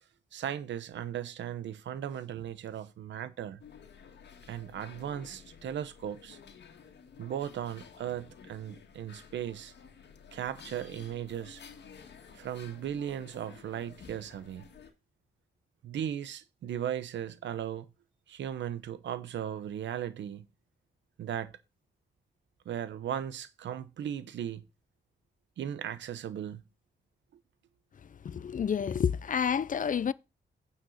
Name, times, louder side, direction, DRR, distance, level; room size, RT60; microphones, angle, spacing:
voice 1, 0.3-3.6 4.5-6.4 7.2-9.7 10.3-11.6 12.3-14.6 15.8-17.9 18.3-20.4 21.2-21.5 22.7-24.6 25.6-26.6, right 10 dB, 85° right, 0.9 m, -37 dB
sound 1, 3.6-14.9, left 6 dB, 70° left, 1.8 m, -53 dB
voice 2, 28.1-30.1, left 7 dB, 45° left, 0.5 m, -29 dB
9.1 x 4.3 x 6.4 m
cardioid pair, 75°, 18 cm